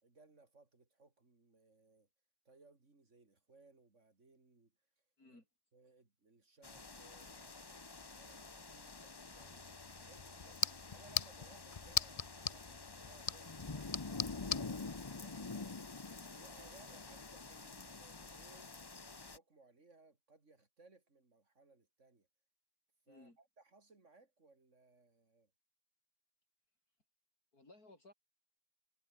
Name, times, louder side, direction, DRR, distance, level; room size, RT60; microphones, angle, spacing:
voice 1, 0.0-2.1 2.5-4.8 5.3-5.4 5.7-15.5 16.3-22.3 23.1-25.5, right 3 dB, 50° right, 3.7 m, -65 dB
sound 1, 6.6-19.4, left 3 dB, 20° left, 0.6 m, -48 dB
sound 2, 9.4-14.7, left 6 dB, 60° left, 0.3 m, -41 dB
voice 2, 23.1-23.4 27.5-28.1, left 2 dB, 75° left, 6.6 m, -59 dB
omnidirectional pair, 1.6 m